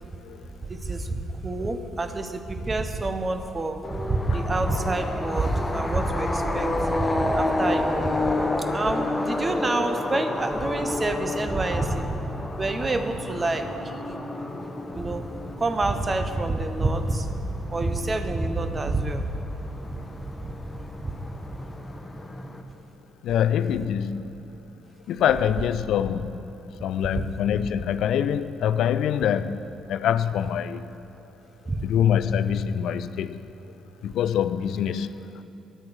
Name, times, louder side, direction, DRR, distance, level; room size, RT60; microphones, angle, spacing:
voice 1, 0.7-8.2 8.7-12.1 12.6-14.0 14.9-15.3 15.6-17.3 17.7-19.3 19.9-20.0 20.4-20.5 21.0-21.1 27.1-27.2 31.7-31.8, right 2 dB, 30° right, 8 dB, 1.0 m, -27 dB
sound 1, 3.8-22.6, left 2 dB, 15° left, 1.0 m, -30 dB
voice 2, 23.2-24.4 25.1-26.4 26.8-29.6 29.9-30.9 31.8-33.4 34.0-35.4, left 9 dB, 65° left, 13 dB, 0.3 m, -25 dB
10.5 x 8.5 x 6.1 m, 2.8 s
hypercardioid pair, 45°, 0 cm